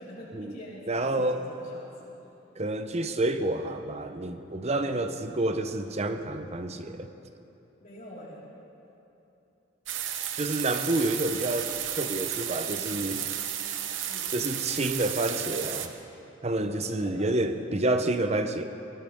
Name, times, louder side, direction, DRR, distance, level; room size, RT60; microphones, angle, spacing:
voice 1, 0.0-2.1 7.8-8.4 12.7-12.9 14.0-14.3 16.5-17.6, equal, 45° left, -7 dB, 4.5 m, -45 dB
voice 2, 0.9-1.4 2.6-7.1 10.4-13.2 14.3-15.9 16.4-18.6, right 2 dB, 35° right, 8 dB, 0.8 m, -29 dB
sound 1, 9.9-15.9, right 10 dB, 80° right, 1.0 m, -33 dB
21.0 x 19.0 x 3.6 m, 2.9 s
head